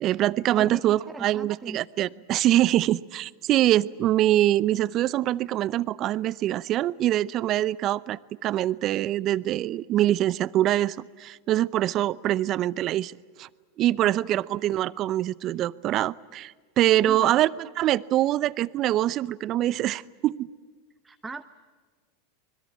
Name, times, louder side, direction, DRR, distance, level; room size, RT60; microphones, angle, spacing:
voice 1, 0.0-13.5 13.8-17.5 17.8-20.5, right 13 dB, 40° right, 20 dB, 0.7 m, -24 dB
voice 2, 0.6-1.8 14.0-14.4 17.0-17.4 21.0-21.4, right 3 dB, 15° right, 8 dB, 1.0 m, -38 dB
25.5 x 21.5 x 8.6 m, 1.5 s
hypercardioid pair, 95°, 0 cm